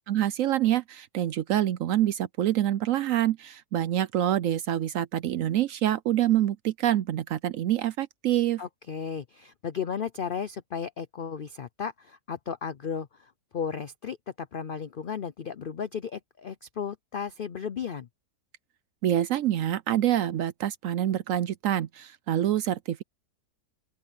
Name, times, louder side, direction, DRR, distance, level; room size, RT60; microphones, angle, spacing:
voice 1, 0.1-8.6 19.0-23.0, right 12 dB, 70° right, 0.8 m, -26 dB
voice 2, 8.6-18.1, left 7 dB, 75° left, 0.4 m, -35 dB
open air
omnidirectional pair, 1.7 m